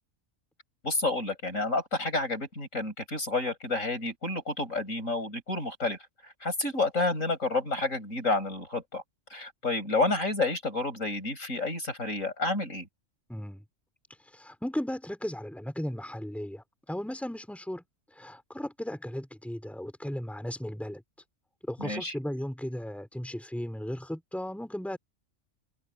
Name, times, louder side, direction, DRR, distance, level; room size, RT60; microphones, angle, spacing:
voice 1, 0.8-6.0 6.4-9.0 9.3-12.9 21.8-22.1, left 2 dB, 80° left, 7.6 m, -30 dB
voice 2, 13.3-13.6 14.3-17.8 18.1-21.0 21.6-25.0, equal, ahead, 4.0 m, -36 dB
omnidirectional pair, 1.4 m